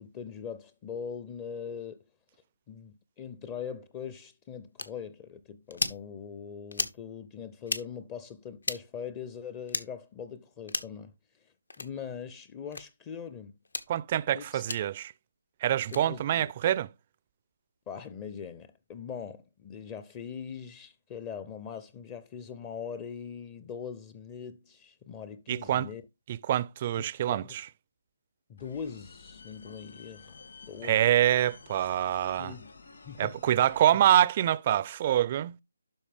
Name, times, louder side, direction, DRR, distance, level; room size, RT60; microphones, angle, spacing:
voice 1, 0.0-2.0 2.7-11.1 11.4-13.5 14.3-14.6 15.9-16.5 17.9-26.0 27.3-27.6 28.5-30.3 30.7-31.0 32.4-32.7 33.1-33.3, left 7 dB, 20° left, 0.5 m, -41 dB
sound 1, 4.8-4.9 5.7-6.0 6.7-7.0 7.6-7.8 8.6-8.8 9.7-9.9 10.7-11.0 11.7-11.9 12.7-12.8 13.6-13.9 14.7-14.8 15.8-16.0, left 3 dB, 80° left, 1.3 m, -33 dB
voice 2, 13.9-15.1 15.6-16.9 25.5-25.9 26.3-27.7 30.8-32.6 33.2-35.6, right 11 dB, 30° right, 0.4 m, -26 dB
sound 2, 28.6-33.8, left 4 dB, 60° left, 2.8 m, -51 dB
12.0 x 4.3 x 3.4 m
figure-of-eight pair, 160°, 0 cm